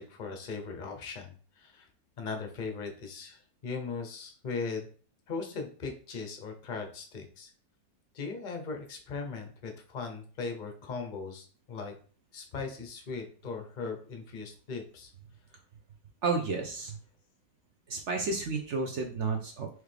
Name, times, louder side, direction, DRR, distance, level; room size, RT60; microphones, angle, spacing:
voice 1, 0.0-1.9 2.2-4.9 5.3-7.5 8.1-11.9 12.3-15.1, left 4 dB, 45° left, 4 dB, 0.6 m, -39 dB
voice 2, 16.2-17.0 17.9-19.7, right 4 dB, 60° right, 3 dB, 0.7 m, -31 dB
4.7 x 3.4 x 3.3 m, 0.42 s
omnidirectional pair, 1.9 m